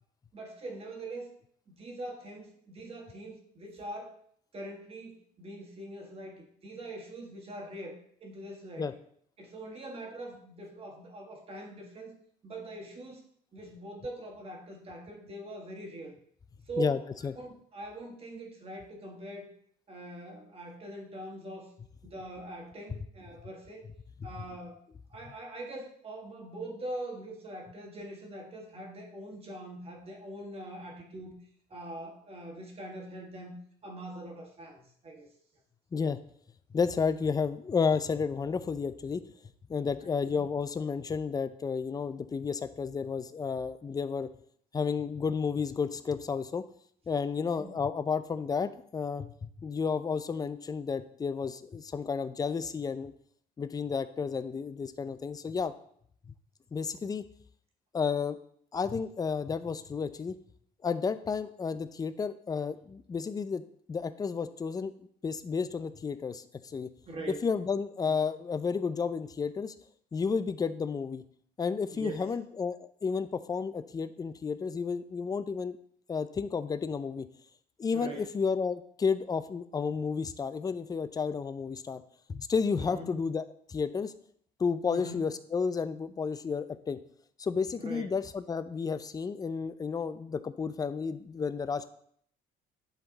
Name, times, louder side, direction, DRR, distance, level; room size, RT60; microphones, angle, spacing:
voice 1, 0.3-1.3 1.7-4.2 4.5-8.9 9.4-12.2 12.4-13.2 13.5-16.1 16.7-17.0 17.4-19.5 19.9-21.7 22.0-23.9 24.2-24.8 25.1-31.4 31.7-33.6 33.8-35.3 35.9-36.0 40.0-40.4 47.4-47.7 67.1-67.5 68.0-68.2 71.9-72.2 77.9-78.3 82.8-83.1 84.9-85.2 87.8-88.1, right 1 dB, 35° right, 1 dB, 1.7 m, -42 dB
voice 2, 16.8-17.3 35.9-36.2 36.7-39.2 39.7-44.3 44.7-46.6 47.1-53.1 53.6-55.7 56.7-57.2 57.9-58.4 58.7-60.4 60.8-63.6 63.9-66.9 67.4-69.7 70.1-71.2 71.6-75.8 76.1-77.3 77.8-82.0 82.3-83.4 83.7-84.1 84.6-87.0 87.4-91.9, left 5 dB, 20° left, 12 dB, 0.4 m, -32 dB
10.5 x 3.8 x 4.0 m, 0.63 s
cardioid pair, 110°, 17 cm